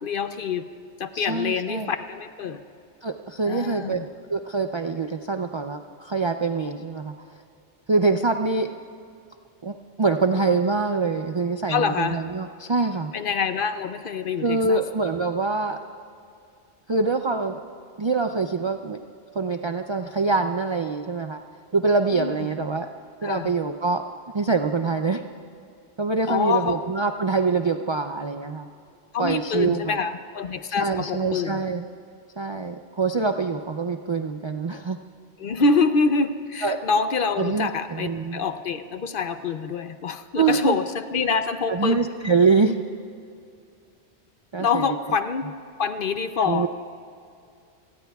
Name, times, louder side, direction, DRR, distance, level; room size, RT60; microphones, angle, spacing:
voice 1, 0.0-0.7 1.0-2.6 3.4-4.1 11.7-12.2 13.1-14.8 22.1-22.3 23.2-23.5 26.3-26.8 29.1-31.6 35.4-41.9 44.6-45.5 45.8-46.7, left 5 dB, 55° left, 10 dB, 0.7 m, -26 dB
voice 2, 1.1-1.9 3.0-4.0 4.3-7.1 7.9-8.7 9.6-13.1 14.4-15.8 16.9-17.6 18.0-19.0 19.3-21.4 21.7-22.9 23.2-24.0 24.3-25.2 26.0-28.7 29.2-30.0 30.8-31.8 32.4-35.0 36.6-36.8 37.4-38.4 40.4-40.8 41.7-42.8 44.5-45.0 46.5-46.7, right 4 dB, 50° right, 6 dB, 0.3 m, -24 dB
28.5 x 19.5 x 2.3 m, 2.4 s
omnidirectional pair, 1.2 m